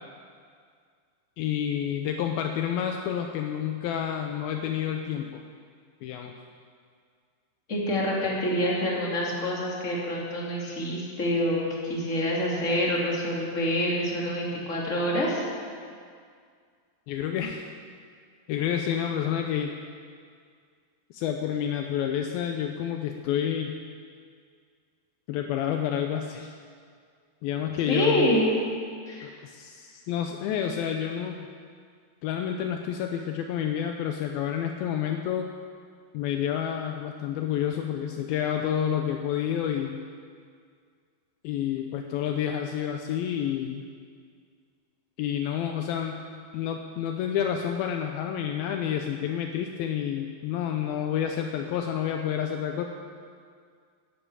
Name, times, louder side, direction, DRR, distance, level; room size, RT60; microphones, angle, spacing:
voice 1, 1.4-5.4 6.0-6.3 17.1-17.7 18.5-19.7 21.1-23.7 25.3-26.5 27.4-28.3 29.2-31.5 32.2-35.5 36.1-40.0 41.4-43.8 45.2-46.2 46.5-52.9, left 9 dB, 80° left, 4 dB, 2.4 m, -29 dB
voice 2, 7.7-15.5 27.9-28.5 29.1-29.3, equal, 20° left, -4 dB, 2.6 m, -27 dB
12.0 x 10.0 x 8.8 m, 2.1 s
omnidirectional pair, 4.6 m